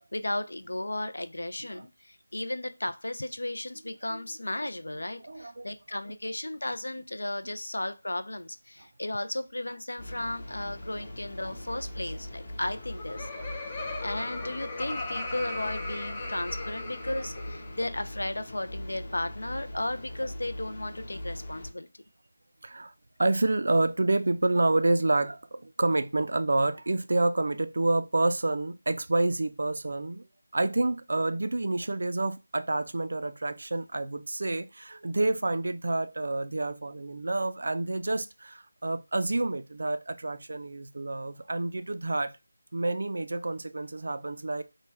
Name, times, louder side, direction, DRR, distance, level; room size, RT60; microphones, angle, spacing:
voice 1, 0.1-13.6 14.0-21.9, left 1 dB, 85° left, 0.4 m, -35 dB
voice 2, 5.2-6.0 7.4-7.5 8.8-8.9 10.6-10.7 11.0-11.1 11.4-11.8 13.1-13.7 16.6-16.7 17.1-17.5 19.7-19.8 22.6-22.9 23.2-30.3 30.5-42.3 42.7-44.6, right 2 dB, 60° right, 0.3 m, -29 dB
sound 1, 10.0-21.7, left 1 dB, 35° left, 0.8 m, -41 dB
Laughter, 12.8-17.9, left 2 dB, 20° left, 0.4 m, -38 dB
3.2 x 2.1 x 3.2 m
figure-of-eight pair, 170°, 0 cm